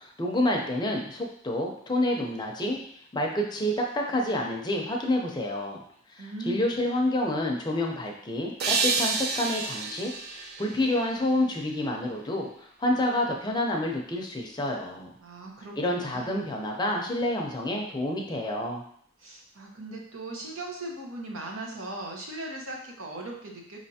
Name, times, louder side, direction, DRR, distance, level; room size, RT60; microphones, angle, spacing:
voice 1, 0.0-2.8 3.1-5.8 6.1-15.1 15.8-18.8, left 1 dB, 20° left, 0 dB, 0.5 m, -28 dB
voice 2, 6.2-6.9 15.2-16.5 19.2-23.8, right 1 dB, 90° right, -1 dB, 1.0 m, -38 dB
sound 1, 8.6-11.7, right 4 dB, 50° right, 0.4 m, -30 dB
5.1 x 3.3 x 2.8 m, 0.65 s
head